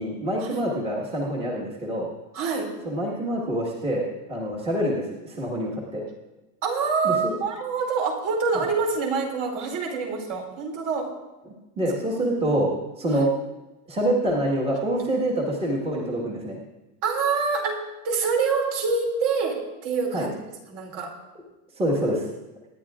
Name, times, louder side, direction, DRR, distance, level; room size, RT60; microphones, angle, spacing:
voice 1, 0.0-2.1 2.8-6.0 7.0-7.4 11.4-12.7 13.0-13.3 13.9-16.6 20.1-20.3 21.8-22.2, right 1 dB, 10° right, -3 dB, 1.6 m, -26 dB
voice 2, 2.3-2.7 6.6-11.1 13.1-13.3 17.0-20.3 20.7-21.1, right 4 dB, 40° right, 2 dB, 2.8 m, -26 dB
25.0 x 10.5 x 2.5 m, 1.1 s
supercardioid pair, 155°, 46 cm